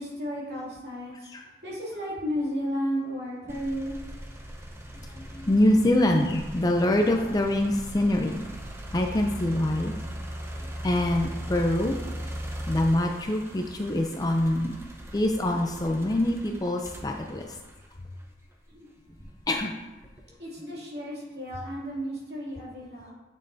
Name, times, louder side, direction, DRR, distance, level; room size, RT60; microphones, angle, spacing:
voice 1, 0.0-1.3 1.6-4.0 4.7-5.4 18.7-19.3 20.4-23.1, equal, 60° right, -6 dB, 2.6 m, -34 dB
sound 1, 3.5-18.5 19.1-20.3, equal, 15° right, 0.7 m, -39 dB
voice 2, 5.5-8.4 8.9-9.9 10.8-12.0 12.7-14.8 15.1-17.5 19.5-19.7, left 1 dB, 20° left, 3 dB, 0.4 m, -24 dB
9.7 x 6.5 x 2.7 m, 1.1 s
head